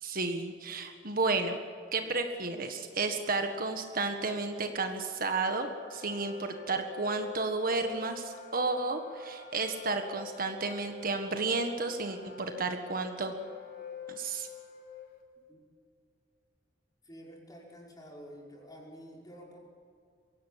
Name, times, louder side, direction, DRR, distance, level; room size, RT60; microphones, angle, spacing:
voice 1, 0.0-1.6 1.9-13.3 14.1-14.5, right 3 dB, 50° right, 6 dB, 1.6 m, -32 dB
Wind instrument woodwind instrument, 5.3-15.2, left 7 dB, 55° left, 3.1 m, -47 dB
voice 2, 17.0-19.6, equal, 20° left, -2 dB, 5.4 m, -49 dB
23.0 x 16.5 x 8.5 m, 2.3 s
head